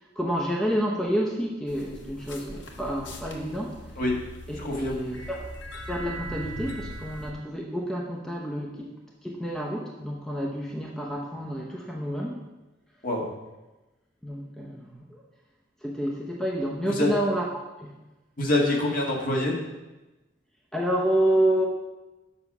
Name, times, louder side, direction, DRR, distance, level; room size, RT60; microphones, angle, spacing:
voice 1, 0.2-3.8 4.5-5.5 5.7-8.9 9.2-12.4 14.2-15.2 15.8-17.9 20.7-21.7, right 1 dB, 5° left, -2 dB, 0.7 m, -29 dB
sound 1, 1.7-7.3, equal, 80° left, 1.0 m, -40 dB
voice 2, 4.6-4.9 13.0-13.3 16.8-17.1 18.4-19.6, left 1 dB, 50° left, -1 dB, 1.5 m, -25 dB
7.0 x 5.5 x 6.0 m, 1.1 s
head